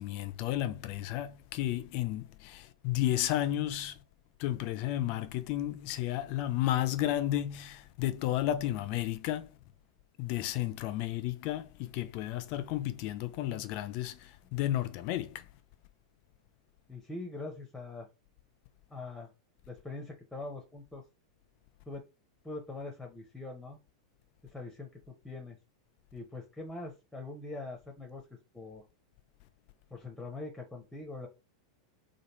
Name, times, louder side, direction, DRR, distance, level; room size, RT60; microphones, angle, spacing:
voice 1, 0.0-4.0 4.4-9.5 10.2-15.4, left 13 dB, 45° left, 0.5 m, -32 dB
voice 2, 16.9-18.1 18.9-19.3 19.7-21.0 21.9-22.1 22.4-23.8 24.4-25.6 26.1-28.3 28.5-28.8 29.9-31.3, left 2 dB, 5° left, 0.7 m, -43 dB
3.1 x 2.2 x 3.0 m
figure-of-eight pair, 95°, 3 cm